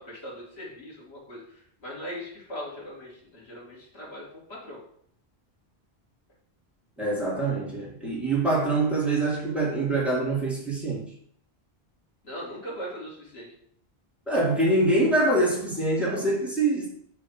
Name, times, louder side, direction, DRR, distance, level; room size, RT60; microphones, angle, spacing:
voice 1, 0.0-4.8 12.2-13.5, equal, 85° left, -4 dB, 2.6 m, -40 dB
voice 2, 7.0-11.1 14.3-16.9, right 2 dB, ahead, -5 dB, 2.1 m, -24 dB
7.1 x 3.4 x 6.2 m, 0.66 s
omnidirectional pair, 1.1 m